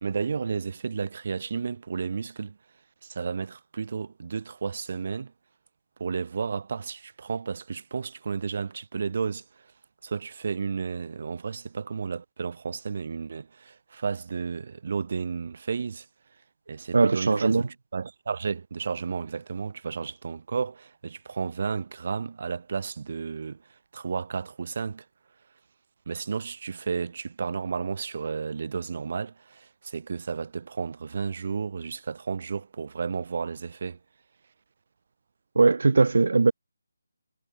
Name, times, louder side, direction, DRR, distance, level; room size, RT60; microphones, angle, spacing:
voice 1, 0.0-2.6 3.0-5.3 6.0-9.7 10.0-16.1 16.7-23.6 23.9-25.1 26.1-34.0, right 5 dB, 50° right, 1.9 m, -32 dB
voice 2, 16.9-17.6 35.6-36.5, right 3 dB, 70° right, 0.9 m, -20 dB
figure-of-eight pair, 165°, 0 cm